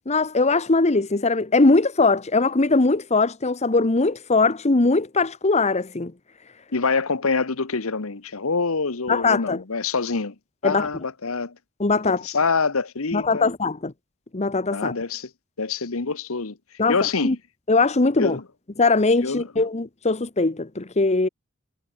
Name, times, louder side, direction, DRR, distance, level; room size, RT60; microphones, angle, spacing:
voice 1, 0.1-6.1 9.1-9.6 10.6-10.9 11.8-12.2 13.1-13.9 14.3-14.9 16.8-17.0 17.2-17.4 17.7-18.4 18.8-21.3, left 3 dB, 30° left, 1.0 m, -20 dB
voice 2, 6.7-10.3 10.6-11.6 12.0-13.5 14.7-15.3 15.6-16.6 16.9-17.3 18.2-18.4 19.2-19.5, left 4 dB, 70° left, 1.2 m, -25 dB
head